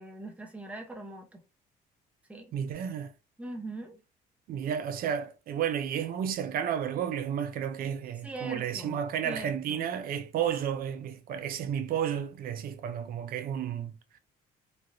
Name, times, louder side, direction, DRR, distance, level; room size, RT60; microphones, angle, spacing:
voice 1, 0.0-1.4 2.3-2.5 3.4-4.0 8.2-9.9, right 2 dB, 10° right, 0.8 m, -41 dB
voice 2, 2.5-3.1 4.5-14.0, right 9 dB, 60° right, 0.5 m, -32 dB
3.2 x 2.3 x 2.6 m
cardioid pair, 110°, 17 cm